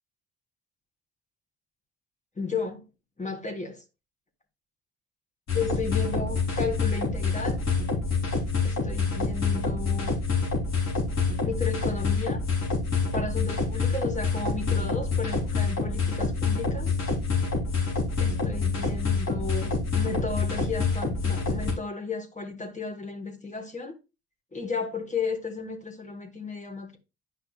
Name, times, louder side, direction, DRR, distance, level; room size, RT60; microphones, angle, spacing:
voice 1, 2.4-2.8 3.2-3.8 5.5-7.6 8.6-10.2 11.4-12.4 13.1-17.0 18.2-24.0 24.5-27.0, left 4 dB, 25° left, 1.6 m, -34 dB
sound 1, 5.5-21.7, left 4 dB, 60° left, 3.5 m, -27 dB
9.0 x 5.7 x 2.4 m
cardioid pair, 90°, 30 cm